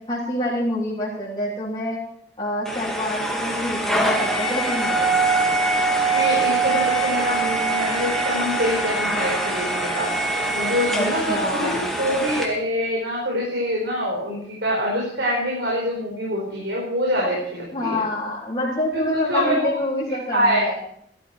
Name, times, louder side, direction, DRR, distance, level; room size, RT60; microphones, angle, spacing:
voice 1, 0.1-2.0 2.4-5.3 10.9-11.9 17.7-20.8, left 1 dB, 30° left, -9 dB, 3.8 m, -27 dB
sound 1, 2.7-12.4, right 2 dB, ahead, 2.2 m, -23 dB
voice 2, 6.1-10.1 10.5-18.0 18.9-19.7 20.3-20.7, equal, 80° right, -4 dB, 4.9 m, -25 dB
16.0 x 13.0 x 4.6 m, 0.68 s
head